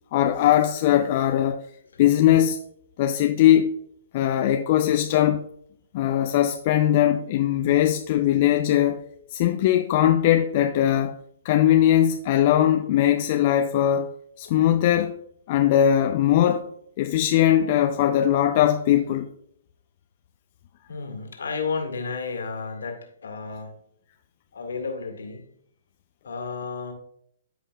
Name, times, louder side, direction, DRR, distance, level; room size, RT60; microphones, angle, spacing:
voice 1, 0.1-1.6 2.0-2.6 3.0-3.7 4.1-5.4 5.9-9.0 9.3-11.2 11.4-14.1 14.4-15.2 15.5-16.7 17.0-19.3, left 11 dB, 45° left, 0.5 m, -20 dB
voice 2, 20.9-23.7 24.5-25.4 26.2-26.9, left 4 dB, 70° left, 2.0 m, -32 dB
13.5 x 5.1 x 2.3 m
figure-of-eight pair, 120°, 0 cm